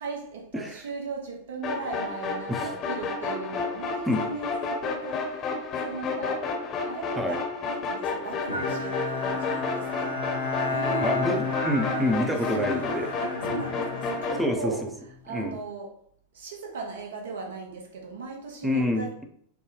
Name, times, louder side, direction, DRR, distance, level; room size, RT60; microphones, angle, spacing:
voice 1, 0.0-6.6 6.9-10.2 10.7-11.3 12.6-12.7 13.2-14.9 15.2-16.0 16.3-19.2, right 4 dB, 60° right, 0.8 m, -38 dB
sound 1, 1.6-14.4, left 4 dB, 30° left, 0.8 m, -31 dB
Bowed string instrument, 8.5-15.2, left 3 dB, 80° left, 0.5 m, -32 dB
voice 2, 10.7-13.1 14.4-14.9 15.3-15.6 18.6-19.2, left 1 dB, 5° right, 0.5 m, -27 dB
3.3 x 2.1 x 3.0 m
figure-of-eight pair, 90°, 0 cm